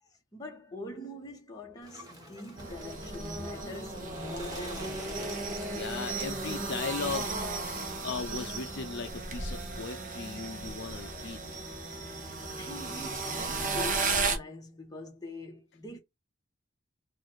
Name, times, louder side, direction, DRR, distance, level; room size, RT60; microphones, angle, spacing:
voice 1, 0.0-5.4 12.6-16.0, left 1 dB, 20° left, 1.4 m, -43 dB
Bird, 1.8-9.4, right 1 dB, 20° right, 1.4 m, -48 dB
sound 1, 2.6-14.4, right 3 dB, 40° right, 0.9 m, -35 dB
voice 2, 5.7-7.4 8.0-11.4, left 5 dB, 55° left, 0.5 m, -37 dB
4.1 x 2.5 x 4.6 m
head